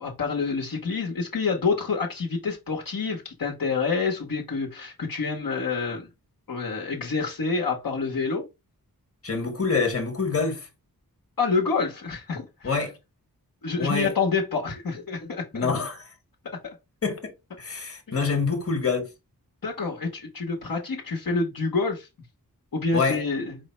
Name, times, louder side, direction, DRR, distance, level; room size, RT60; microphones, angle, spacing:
voice 1, 0.0-6.1 6.5-8.5 11.4-12.8 13.6-15.7 18.1-18.2 19.6-22.1 22.7-23.6, left 4 dB, 65° left, 1.1 m, -27 dB
voice 2, 9.2-10.6 12.6-12.9 13.7-14.1 15.5-16.0 17.0-17.3 17.6-19.1 22.9-23.2, left 4 dB, 40° left, 1.3 m, -26 dB
4.9 x 2.1 x 4.3 m
wide cardioid pair, 90°, 37 cm